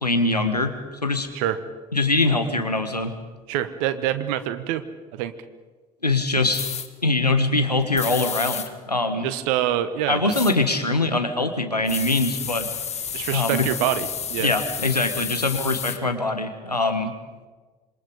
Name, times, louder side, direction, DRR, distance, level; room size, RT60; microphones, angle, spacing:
voice 1, 0.0-0.7 1.0-1.3 1.9-3.1 6.0-6.6 7.0-9.3 10.1-12.7 13.3-13.7 14.4-17.1, left 2 dB, 90° left, 7 dB, 1.5 m, -23 dB
voice 2, 3.5-4.8 5.1-5.3 9.2-10.4 13.1-14.5, right 12 dB, 60° right, 11 dB, 1.4 m, -25 dB
sound 1, 6.5-6.9 8.0-8.7 10.3-10.5 11.9-16.0, left 7 dB, 35° left, 1.7 m, -31 dB
27.0 x 22.5 x 5.2 m, 1.3 s
figure-of-eight pair, 55°, 20 cm